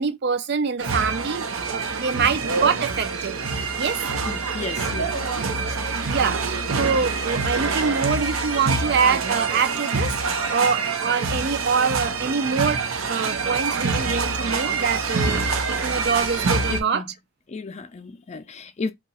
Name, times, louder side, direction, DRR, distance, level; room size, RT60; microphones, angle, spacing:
voice 1, 0.0-3.4 3.8-4.0 5.9-10.1 10.5-17.0, right 5 dB, 55° right, 0.4 m, -25 dB
sound 1, 0.8-16.8, right 4 dB, 90° right, 0.7 m, -26 dB
voice 2, 4.3-5.4 16.7-17.1 17.5-18.9, left 4 dB, 35° left, 0.4 m, -33 dB
2.8 x 2.4 x 4.0 m
head